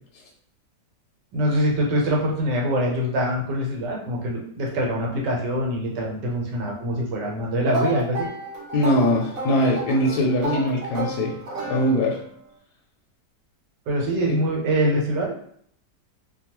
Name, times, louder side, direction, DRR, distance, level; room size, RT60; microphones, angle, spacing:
voice 1, 1.3-8.3 13.9-15.3, equal, 80° right, -1 dB, 1.4 m, -24 dB
sound 1, 7.7-12.3, right 2 dB, 60° right, 1.1 m, -31 dB
voice 2, 8.7-11.4 11.7-12.2 14.3-14.4, left 1 dB, 70° left, -1 dB, 1.0 m, -21 dB
2.9 x 2.2 x 2.9 m, 0.63 s
omnidirectional pair, 1.9 m